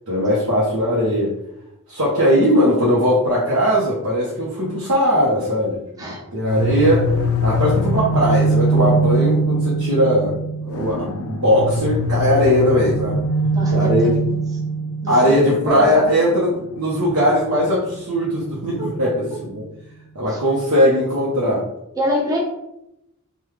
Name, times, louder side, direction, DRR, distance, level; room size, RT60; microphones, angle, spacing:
voice 1, 0.1-1.3 1.9-7.1 7.4-10.3 10.7-13.2 13.7-14.2 15.1-19.6 20.1-21.6, equal, 70° right, -8 dB, 0.8 m, -19 dB
sound 1, 6.5-19.2, right 1 dB, 75° left, 0.3 m, -22 dB
voice 2, 13.5-14.4 15.0-16.1 20.3-20.4 22.0-22.4, equal, 15° right, -5 dB, 0.7 m, -26 dB
3.5 x 2.3 x 3.1 m, 0.85 s
head